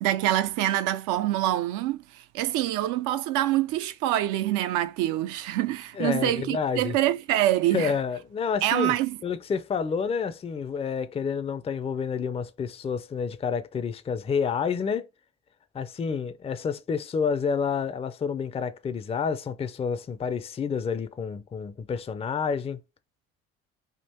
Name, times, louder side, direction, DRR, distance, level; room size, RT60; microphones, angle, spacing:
voice 1, 0.0-7.9 8.6-9.2, right 14 dB, 70° right, 0.5 m, -25 dB
voice 2, 6.0-7.0 7.7-9.0 9.2-15.1 15.7-22.8, left 6 dB, 20° left, 0.4 m, -29 dB
3.6 x 2.5 x 4.2 m
hypercardioid pair, 60°, 32 cm